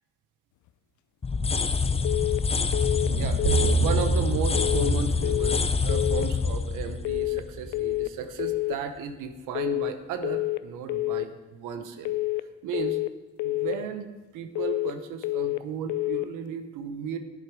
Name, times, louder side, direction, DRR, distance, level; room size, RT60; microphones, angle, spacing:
sound 1, 1.2-8.1, left 4 dB, 20° left, 0.6 m, -26 dB
sound 2, 2.0-2.4 2.7-3.1 3.4-3.8 4.5-4.9 5.2-5.6 5.9-6.3 7.0-7.4 7.7-8.1 8.4-8.8 9.5-9.9 10.2-10.6 10.9-11.3 12.0-12.4 12.7-13.1 13.4-13.8 14.6-15.0 15.2-15.6 15.9-16.3, left 19 dB, 75° left, 0.5 m, -28 dB
sound 3, 3.0-7.1, right 6 dB, 45° right, 0.5 m, -30 dB
voice 1, 3.0-12.1 12.6-13.0 13.4-14.1 14.3-17.2, right 6 dB, 90° right, 7 dB, 0.9 m, -34 dB
10.5 x 8.3 x 4.7 m, 1.2 s
cardioid pair, 90°, 30 cm